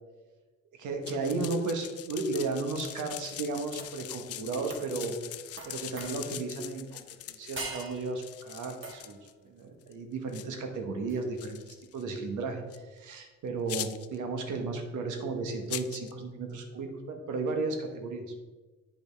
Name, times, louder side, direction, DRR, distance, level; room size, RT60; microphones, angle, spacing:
voice 1, 0.8-5.2 5.7-9.2 9.4-18.2, right 3 dB, 80° right, 4 dB, 1.2 m, -34 dB
sound 1, 1.0-9.3 9.8-9.9 10.3-10.5 11.4-12.0 12.7-12.8 13.7-14.2 15.7-16.1, left 12 dB, 55° left, 0.4 m, -42 dB
sound 2, 3.8-4.1 4.7-5.0 5.6-6.5 7.6-8.2 8.8-9.3 11.1-11.2, right 3 dB, 40° right, 1.7 m, -43 dB
8.9 x 5.2 x 3.4 m, 1.3 s
cardioid pair, 90°, 30 cm